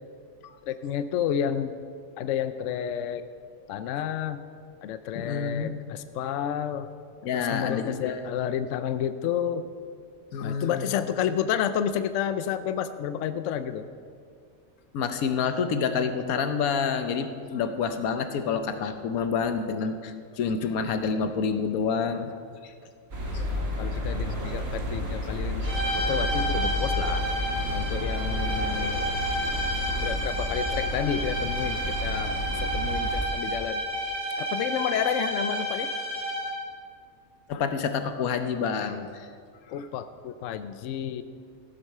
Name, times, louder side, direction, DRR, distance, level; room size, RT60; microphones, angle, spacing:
voice 1, 0.7-1.7 2.2-3.2 3.7-4.4 4.8-6.9 7.3-9.7 10.4-13.9 23.3-25.7 25.9-27.2 27.7-29.0 30.0-33.8 34.4-35.9 39.7-41.2, left 9 dB, 70° left, 11 dB, 0.8 m, -30 dB
voice 2, 5.2-5.7 7.2-8.2 10.3-10.9 14.9-22.3 22.6-22.7 37.5-39.3, left 6 dB, 85° left, 8 dB, 1.2 m, -28 dB
sound 1, 23.1-33.2, equal, 45° right, 1.9 m, -31 dB
sound 2, 25.6-36.7, equal, 75° right, 3.7 m, -31 dB
15.0 x 7.9 x 5.5 m, 2.2 s
omnidirectional pair, 1.5 m